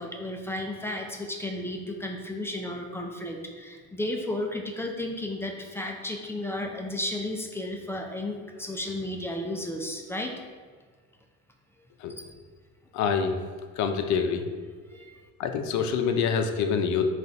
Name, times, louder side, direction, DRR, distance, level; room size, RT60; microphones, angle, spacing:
voice 1, 0.0-10.3 12.2-12.3 14.9-15.2, left 1 dB, 10° left, 2 dB, 0.3 m, -33 dB
voice 2, 12.9-13.4 13.8-14.4 15.4-17.0, left 6 dB, 65° left, 6 dB, 0.5 m, -26 dB
3.8 x 2.4 x 4.3 m, 1.5 s
cardioid pair, 115°, 31 cm